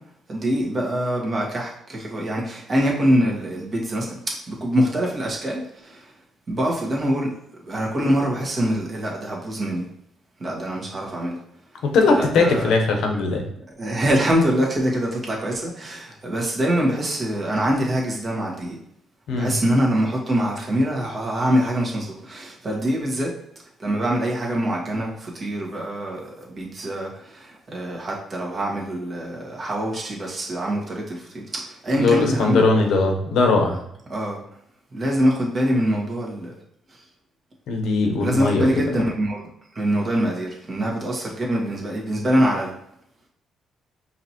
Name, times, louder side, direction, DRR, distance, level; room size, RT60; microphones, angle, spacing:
voice 1, 0.3-6.1 6.5-7.3 7.6-9.9 10.4-11.4 12.1-12.7 13.8-18.8 19.3-23.3 23.8-32.7 34.1-34.4 34.9-36.5 36.9-37.0 38.2-39.4 39.7-42.7, equal, 40° right, -3 dB, 1.5 m, -24 dB
voice 2, 11.8-13.4 19.3-19.5 31.9-33.7 37.7-38.7, left 3 dB, 80° left, 3 dB, 0.8 m, -19 dB
5.0 x 2.9 x 2.9 m, 0.74 s
cardioid pair, 90°, 0 cm